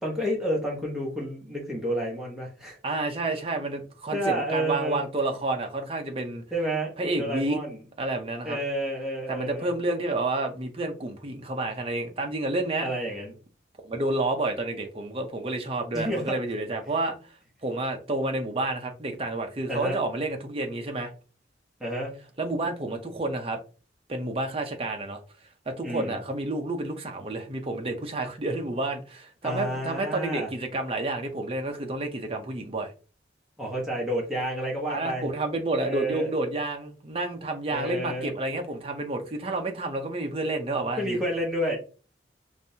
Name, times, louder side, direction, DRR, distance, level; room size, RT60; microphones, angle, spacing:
voice 1, 0.0-2.8 4.1-5.0 6.5-7.8 8.4-9.7 12.8-13.3 15.9-16.3 19.7-20.0 21.8-22.1 25.8-26.2 29.4-30.5 33.6-35.3 35.8-36.3 37.7-38.3 41.0-41.8, right 1 dB, 5° right, 1.2 m, -30 dB
voice 2, 2.8-6.4 7.0-7.6 8.0-8.6 9.3-12.9 13.8-17.3 17.6-21.1 22.4-23.6 24.1-25.2 25.7-32.9 34.9-41.2, right 2 dB, 30° right, 0.6 m, -30 dB
5.1 x 2.6 x 2.7 m
head